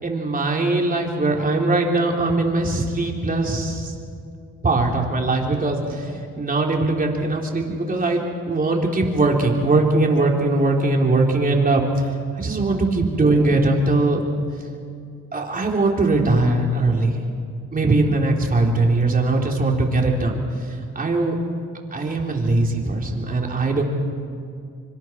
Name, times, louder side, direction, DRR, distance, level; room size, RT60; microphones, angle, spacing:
voice 1, 0.0-3.9 4.6-12.1 12.4-14.2 15.3-17.2 17.7-21.4 21.9-23.8, right 2 dB, 30° right, 0 dB, 3.7 m, -21 dB
25.5 x 25.5 x 4.7 m, 2.4 s
cardioid pair, 90°, 30 cm